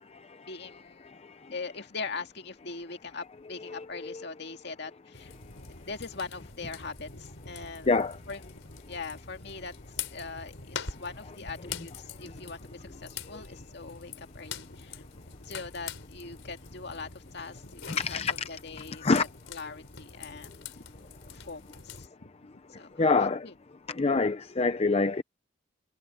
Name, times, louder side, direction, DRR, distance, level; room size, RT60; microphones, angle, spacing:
voice 1, 0.4-1.1 1.5-5.3 5.8-7.9 8.3-8.4 8.9-9.7 10.1-15.0 15.5-20.9 21.3-23.5, left 4 dB, 60° left, 2.2 m, -41 dB
voice 2, 3.6-4.3 7.9-8.2 17.9-18.5 19.0-19.3 23.0-23.5 23.9-25.2, left 4 dB, 35° left, 0.6 m, -26 dB
sound 1, 5.1-22.1, left 5 dB, 90° left, 4.0 m, -44 dB
head